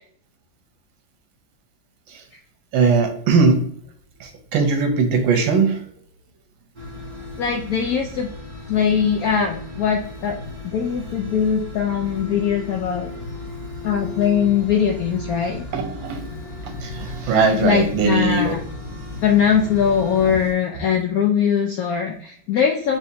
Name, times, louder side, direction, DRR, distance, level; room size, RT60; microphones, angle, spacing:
voice 1, 2.7-3.7 4.2-5.9 13.1-13.2 15.7-16.2 16.6-18.6 20.3-20.4, right 4 dB, 90° right, 1.6 m, -20 dB
sound 1, 6.8-20.5, left 2 dB, 35° right, 0.7 m, -35 dB
voice 2, 7.4-8.3 8.7-10.4 10.6-13.1 13.8-15.6 17.6-18.6 19.2-23.0, left 7 dB, 80° left, 0.8 m, -21 dB
4.9 x 2.8 x 2.7 m
omnidirectional pair, 2.1 m